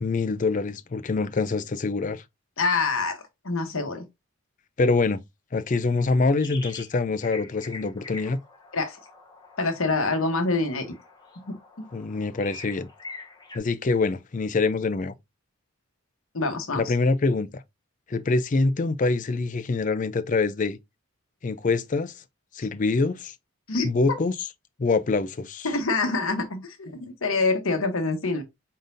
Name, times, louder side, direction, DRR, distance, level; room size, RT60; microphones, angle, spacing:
voice 1, 0.0-2.2 4.8-5.2 5.5-8.4 11.9-12.9 13.5-15.1 16.7-17.5 18.1-20.8 21.4-22.1 22.5-23.3 23.8-24.3 24.8-25.7, left 3 dB, 35° left, 0.4 m, -25 dB
voice 2, 2.6-4.1 8.7-9.0 9.6-10.9 11.5-11.6 16.3-16.9 22.6-22.7 23.7-23.9 25.6-28.4, left 3 dB, 65° left, 1.0 m, -26 dB
sound 1, 6.4-6.9 7.2-13.6, left 3 dB, 20° left, 0.9 m, -44 dB
5.1 x 3.9 x 2.6 m
head